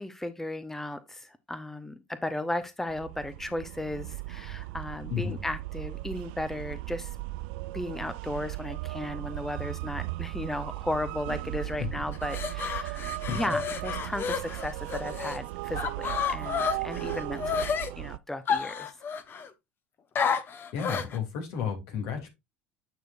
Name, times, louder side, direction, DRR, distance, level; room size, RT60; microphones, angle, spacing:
voice 1, 0.0-7.2 7.7-19.0, left 1 dB, 5° left, 0.8 m, -35 dB
sound 1, 2.9-18.2, right 20 dB, 70° right, 0.3 m, -37 dB
sound 2, 12.1-15.4 15.8-17.9 18.5-19.5 20.2-21.2, left 6 dB, 40° left, 1.1 m, -31 dB
voice 2, 20.7-22.3, left 7 dB, 65° left, 2.7 m, -32 dB
9.2 x 6.2 x 2.6 m
hypercardioid pair, 75°, 6 cm